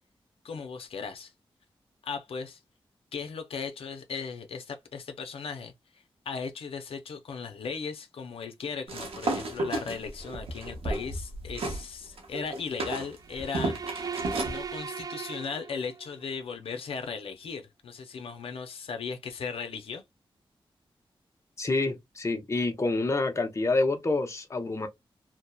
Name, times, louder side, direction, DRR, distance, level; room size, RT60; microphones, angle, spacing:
voice 1, 0.4-1.3 2.0-2.6 3.1-20.0, left 5 dB, 80° left, 0.5 m, -37 dB
sound 1, 8.9-11.8 12.2-14.6, right 2 dB, 90° right, 0.7 m, -32 dB
sound 2, 13.2-16.2, right 6 dB, 40° right, 0.4 m, -38 dB
voice 2, 21.6-24.9, left 2 dB, 30° left, 0.7 m, -27 dB
2.7 x 2.0 x 2.2 m
cardioid pair, 75°, 9 cm